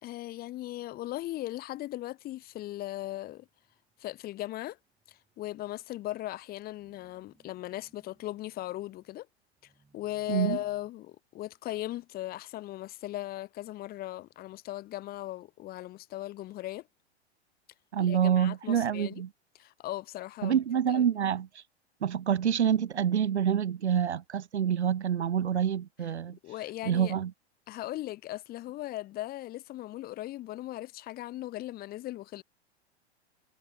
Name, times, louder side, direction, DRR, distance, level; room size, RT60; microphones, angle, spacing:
voice 1, 0.0-3.5 4.0-4.8 5.1-9.3 9.9-16.9 18.0-19.2 19.5-20.6 20.9-21.0 26.4-27.1 27.7-32.4, left 15 dB, 30° left, 1.0 m, -38 dB
sound 1, 2.3-10.9, right 3 dB, 10° right, 7.0 m, -69 dB
voice 2, 17.9-19.3 20.4-21.5 22.0-26.4 26.8-27.3, right 8 dB, 85° right, 0.6 m, -27 dB
figure-of-eight pair, 95°, 33 cm